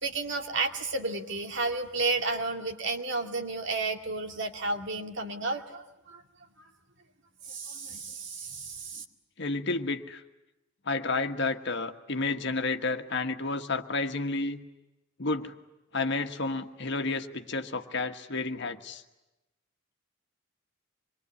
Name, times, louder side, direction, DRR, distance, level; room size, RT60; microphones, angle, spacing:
voice 1, 0.0-6.2 6.6-6.7 7.4-9.0, right 3 dB, 60° right, 4 dB, 2.3 m, -32 dB
voice 2, 9.4-10.2 10.8-14.6 15.2-15.5 15.9-19.0, left 3 dB, 60° left, 6 dB, 1.5 m, -31 dB
26.0 x 22.5 x 9.7 m, 0.98 s
head